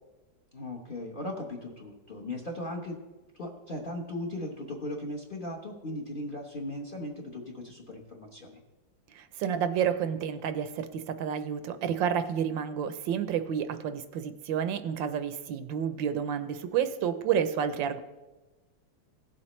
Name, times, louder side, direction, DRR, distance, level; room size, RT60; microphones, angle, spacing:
voice 1, 0.5-3.0 3.4-8.6, left 1 dB, 35° left, 1 dB, 1.0 m, -38 dB
voice 2, 9.1-18.0, right 8 dB, 80° right, 10 dB, 1.4 m, -30 dB
17.5 x 7.5 x 3.1 m, 1.1 s
omnidirectional pair, 2.1 m